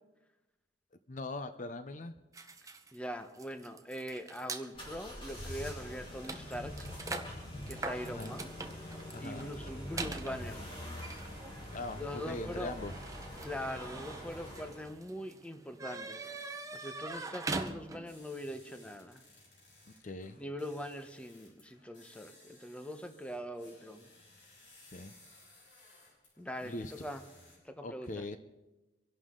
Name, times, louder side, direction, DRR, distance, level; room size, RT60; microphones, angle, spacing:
voice 1, 1.1-2.1 8.1-8.4 9.1-9.5 11.7-12.9 19.9-20.4 24.9-25.1 26.6-26.9 27.8-28.4, left 2 dB, 45° left, 10 dB, 0.7 m, -41 dB
sound 1, 2.3-4.7 5.4-5.5 5.8-18.2, right 3 dB, 20° right, 0.9 m, -43 dB
voice 2, 2.9-6.9 7.7-8.5 9.2-10.6 12.0-12.8 13.4-19.2 20.4-24.1 26.4-27.2 27.6-28.2, equal, 5° left, 7 dB, 0.9 m, -42 dB
sound 2, 4.7-14.9, left 1 dB, 30° left, 4.7 m, -45 dB
sound 3, 18.0-27.6, left 2 dB, 80° left, 6.4 m, -60 dB
25.0 x 11.5 x 3.8 m, 1.1 s
head